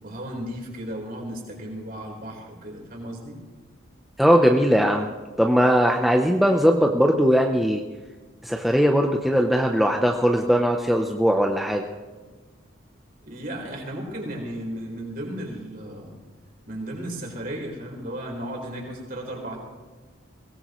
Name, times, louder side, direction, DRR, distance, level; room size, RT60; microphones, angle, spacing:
voice 1, 0.0-3.4 13.2-16.1 16.7-19.6, right 1 dB, 45° right, 0 dB, 4.2 m, -35 dB
voice 2, 4.2-5.1 5.4-7.8 8.4-11.9, equal, ahead, 1 dB, 0.7 m, -19 dB
22.5 x 18.5 x 3.1 m, 1.4 s
head